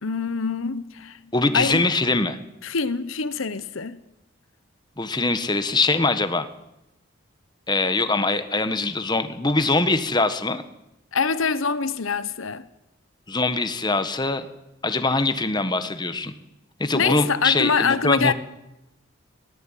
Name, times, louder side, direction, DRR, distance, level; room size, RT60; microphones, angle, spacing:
voice 1, 0.0-1.9 2.6-4.0 11.1-12.7 16.9-18.3, left 5 dB, 80° left, 0.9 m, -25 dB
voice 2, 1.3-2.4 5.0-6.5 7.7-10.6 13.3-14.5 14.8-16.3 16.8-18.3, left 3 dB, 20° left, 1.4 m, -22 dB
20.0 x 17.0 x 9.2 m
head